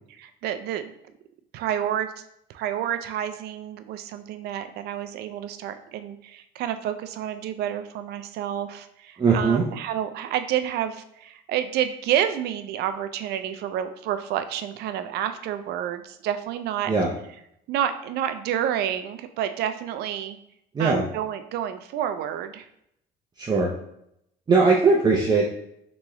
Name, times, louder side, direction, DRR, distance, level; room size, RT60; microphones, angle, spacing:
voice 1, 0.2-0.9 1.5-2.1 2.5-16.9 17.7-20.4 20.8-22.7, right 10 dB, 75° right, 9 dB, 0.4 m, -29 dB
voice 2, 9.2-9.6 16.9-17.1 20.7-21.0 23.4-23.7 24.5-25.5, right 4 dB, 25° right, -2 dB, 0.5 m, -20 dB
3.5 x 3.0 x 3.0 m, 0.77 s
cardioid pair, 110°, 17 cm